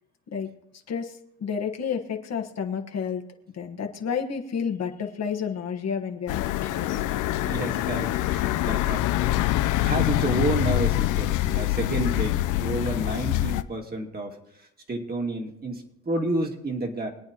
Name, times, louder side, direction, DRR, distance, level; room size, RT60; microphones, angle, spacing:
voice 1, 0.9-3.2 3.5-7.0, left 7 dB, 60° left, 4 dB, 1.4 m, -30 dB
sound 1, 6.3-13.6, left 15 dB, 85° left, 0.5 m, -25 dB
voice 2, 7.4-17.1, right 2 dB, 30° right, 2 dB, 2.1 m, -31 dB
24.0 x 8.9 x 2.9 m, 0.83 s
cardioid pair, 90°, 30 cm